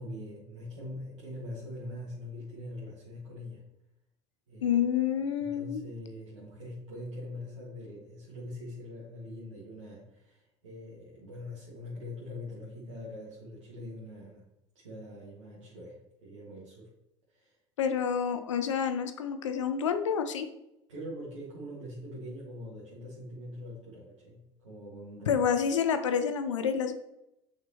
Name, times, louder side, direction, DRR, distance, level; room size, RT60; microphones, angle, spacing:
voice 1, 0.0-3.6 4.5-4.8 5.4-14.5 14.8-16.9 17.3-17.6 20.9-25.4, left 1 dB, 85° right, -7 dB, 1.7 m, -43 dB
voice 2, 4.6-5.8 17.8-20.5 25.3-27.0, left 7 dB, 85° left, 9 dB, 0.6 m, -28 dB
6.3 x 5.9 x 2.9 m, 0.85 s
hypercardioid pair, 70°, 15 cm